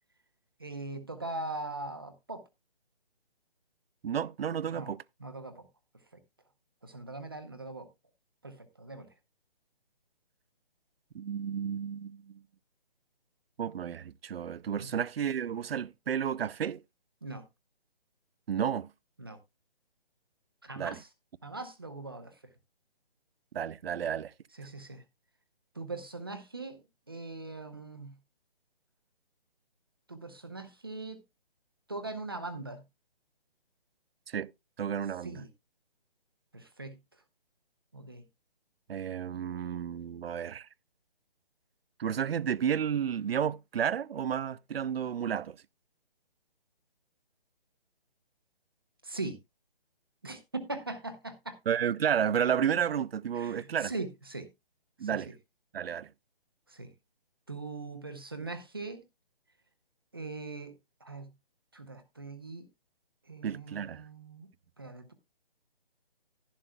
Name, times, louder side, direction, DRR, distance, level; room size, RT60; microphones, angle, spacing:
voice 1, 0.6-2.4 4.7-4.9 5.2-5.7 6.8-7.9 8.4-9.1 14.8-15.0 17.2-17.4 19.2-19.4 20.6-21.1 21.4-22.3 24.6-25.0 25.7-26.8 27.1-28.1 30.1-31.2 31.9-32.8 35.2-35.5 36.5-37.0 37.9-38.2 49.0-49.4 50.2-51.6 53.3-54.5 55.1-55.2 56.7-56.9 57.5-59.0 60.1-60.7 61.0-61.3 61.7-62.6 63.3-64.5 64.8-65.1, right 3 dB, 25° right, 0.7 m, -40 dB
voice 2, 4.0-5.0 11.1-12.4 13.6-16.8 18.5-18.9 20.8-21.0 23.5-24.3 34.3-34.5 34.8-35.4 38.9-40.7 42.0-45.6 51.7-53.9 55.0-55.3 55.7-56.1 63.4-64.0, right 8 dB, 80° right, 0.5 m, -31 dB
11.5 x 11.5 x 2.2 m
hypercardioid pair, 180°, 29 cm